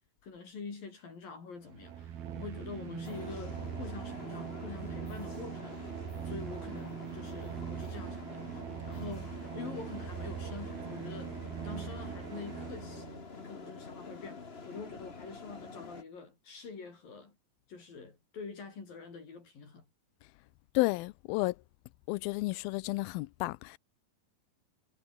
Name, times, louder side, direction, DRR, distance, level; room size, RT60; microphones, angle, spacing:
voice 1, 0.2-5.9 6.2-8.4 8.9-11.3 11.6-17.4 17.7-19.9, left 5 dB, 70° left, 7.2 m, -45 dB
sound 1, 1.7-13.3, right 9 dB, 85° right, 4.3 m, -41 dB
sound 2, 3.0-16.0, left 4 dB, 35° left, 1.0 m, -47 dB
voice 2, 20.7-21.6 22.1-23.8, left 21 dB, 90° left, 2.4 m, -31 dB
omnidirectional pair, 4.2 m